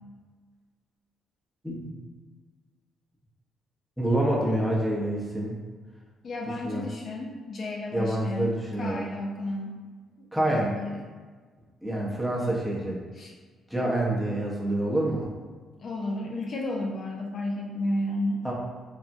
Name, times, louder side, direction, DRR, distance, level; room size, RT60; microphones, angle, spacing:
voice 1, 4.0-5.6 6.6-6.8 7.9-9.1 10.3-10.7 11.8-13.0 13.7-15.3 18.4-18.5, right 1 dB, 5° left, -4 dB, 0.7 m, -27 dB
voice 2, 6.2-9.8 10.5-11.0 13.2-13.3 15.8-18.4, left 1 dB, 55° left, 0 dB, 0.3 m, -32 dB
3.3 x 2.1 x 2.6 m, 1.5 s
cardioid pair, 90°, 0 cm